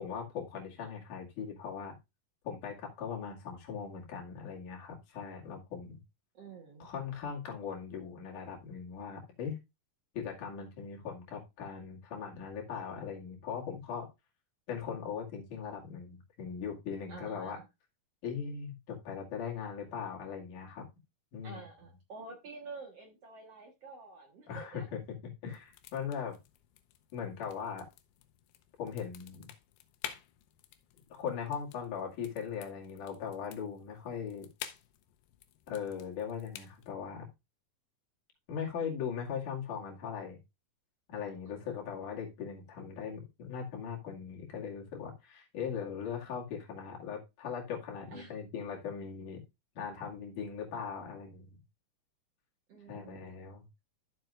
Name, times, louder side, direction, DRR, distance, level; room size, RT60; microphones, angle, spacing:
voice 1, 0.0-1.9 2.4-6.0 6.8-9.6 10.1-14.1 14.7-17.6 18.2-20.9 21.3-21.6 24.5-25.0 25.4-26.4 27.1-27.9 28.8-29.5 31.1-34.5 35.7-37.3 38.5-40.4 41.1-49.4 49.8-51.6 52.9-53.7, left 7 dB, 55° left, 3.5 m, -39 dB
voice 2, 6.3-6.9 17.1-17.7 21.4-24.9 41.5-41.9 48.1-48.3 52.7-53.2, right 3 dB, 60° right, 1.8 m, -49 dB
sound 1, 25.5-36.9, left 11 dB, 80° left, 2.7 m, -51 dB
13.0 x 7.4 x 2.5 m
omnidirectional pair, 4.5 m